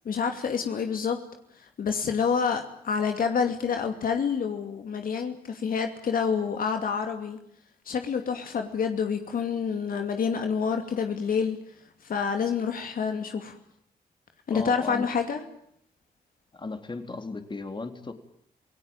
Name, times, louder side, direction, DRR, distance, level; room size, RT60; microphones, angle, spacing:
voice 1, 0.0-1.2 1.8-7.4 7.9-11.6 12.0-13.6 14.5-15.4, left 6 dB, 65° left, 5 dB, 2.6 m, -28 dB
voice 2, 14.5-15.1 16.5-18.1, left 3 dB, 30° left, 7 dB, 3.6 m, -35 dB
27.5 x 18.0 x 8.9 m, 0.71 s
cardioid pair, 70°, 16 cm